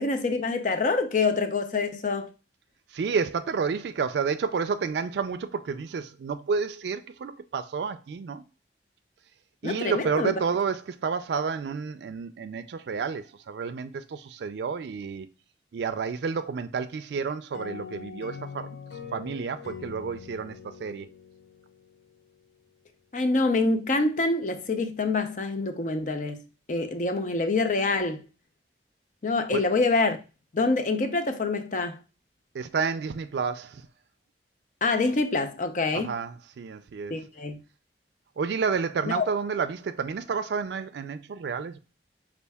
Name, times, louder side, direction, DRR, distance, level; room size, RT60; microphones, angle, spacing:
voice 1, 0.0-2.3 9.6-10.4 23.1-26.4 26.7-28.2 29.2-30.2 30.5-32.0 34.8-36.2 37.1-37.6 39.1-39.3, left 3 dB, 45° left, 0.5 m, -26 dB
voice 2, 2.9-8.4 9.6-15.3 15.7-18.8 19.1-21.1 29.5-29.7 32.5-33.8 35.9-37.1 38.4-41.8, right 5 dB, 75° right, 0.4 m, -30 dB
sound 1, 17.5-22.2, left 6 dB, 85° left, 0.7 m, -43 dB
5.3 x 2.5 x 3.4 m
head